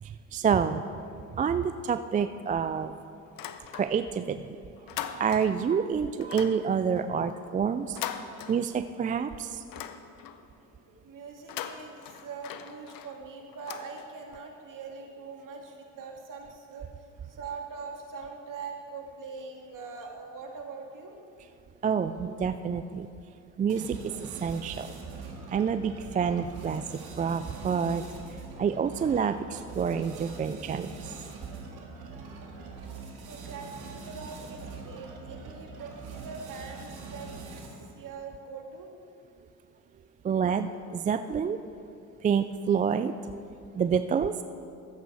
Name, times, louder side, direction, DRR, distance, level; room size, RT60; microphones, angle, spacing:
voice 1, 0.0-0.8 1.3-3.0 3.7-4.6 5.0-8.0 8.5-9.6 21.8-23.1 23.6-24.9 25.5-26.9 27.2-28.0 28.6-31.1 40.2-41.6 42.2-43.1 43.7-44.4, right 7 dB, 20° right, 11 dB, 0.3 m, -28 dB
sound 1, 3.3-4.2 4.5-5.7 6.2-9.0 9.4-10.5 11.3-14.4, left 9 dB, 55° left, 0.8 m, -41 dB
voice 2, 10.9-21.2 33.3-37.3 37.6-38.9, right 4 dB, 50° right, 1 dB, 2.2 m, -42 dB
sound 2, 23.7-37.9, right 4 dB, 70° right, 2.0 m, -43 dB
13.5 x 8.1 x 4.9 m, 2.5 s
hypercardioid pair, 65°, 39 cm